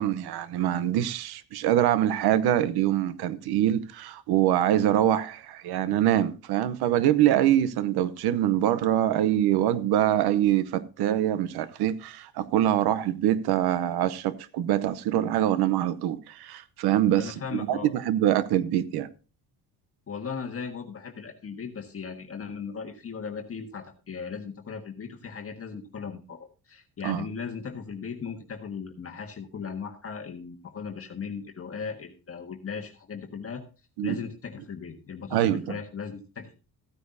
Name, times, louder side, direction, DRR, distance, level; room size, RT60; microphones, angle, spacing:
voice 1, 0.0-19.1 27.0-27.3 34.0-34.2 35.3-35.6, right 12 dB, 85° right, 0.9 m, -24 dB
voice 2, 17.1-17.9 20.1-33.6 34.0-36.5, left 6 dB, 35° left, 1.5 m, -37 dB
15.0 x 9.7 x 2.7 m
cardioid pair, 100°, 37 cm